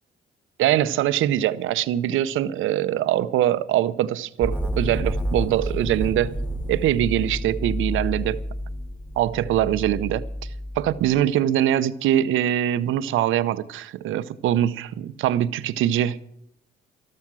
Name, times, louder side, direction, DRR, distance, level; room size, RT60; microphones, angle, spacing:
voice 1, 0.6-6.3 6.7-8.4 9.2-10.2 10.8-16.3, right 12 dB, 85° right, 0.7 m, -23 dB
sound 1, 4.4-11.2, equal, 5° left, 1.8 m, -30 dB
13.5 x 13.0 x 6.1 m
cardioid pair, 90°, 20 cm